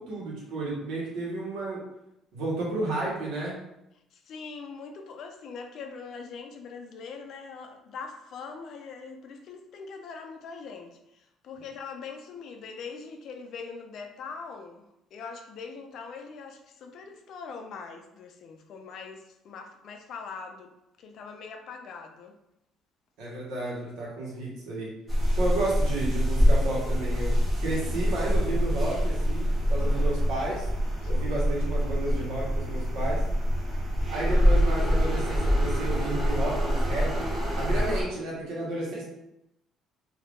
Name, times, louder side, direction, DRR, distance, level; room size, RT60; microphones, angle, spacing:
voice 1, 0.0-1.8 2.3-3.6 23.2-24.9 25.4-27.3 27.6-30.7 31.1-33.2 34.1-39.0, right 2 dB, 80° right, -5 dB, 1.3 m, -32 dB
voice 2, 4.1-22.4 25.6-25.8 29.7-30.2 31.0-31.1 32.1-32.3, left 5 dB, 50° left, 4 dB, 0.4 m, -42 dB
sound 1, 25.1-38.0, equal, 25° right, 0.8 m, -25 dB
2.7 x 2.5 x 3.5 m, 0.85 s
cardioid pair, 155°, 0 cm